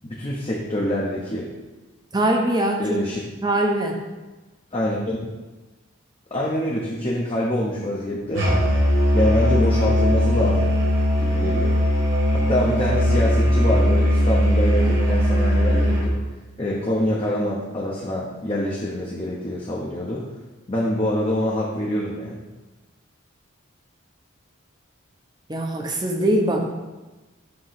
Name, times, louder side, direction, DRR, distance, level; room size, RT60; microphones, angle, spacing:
voice 1, 0.0-1.5 2.8-3.2 4.7-5.2 6.3-8.5 9.1-10.8 11.2-11.7 12.3-16.2 16.6-20.3 20.7-22.4, left 1 dB, 25° left, -4 dB, 0.8 m, -25 dB
voice 2, 2.1-3.0 3.4-4.0 25.5-26.7, right 1 dB, 20° right, 2 dB, 0.8 m, -22 dB
Musical instrument, 8.3-16.1, equal, 65° right, 2.0 m, -19 dB
7.7 x 3.1 x 5.8 m, 1.2 s
head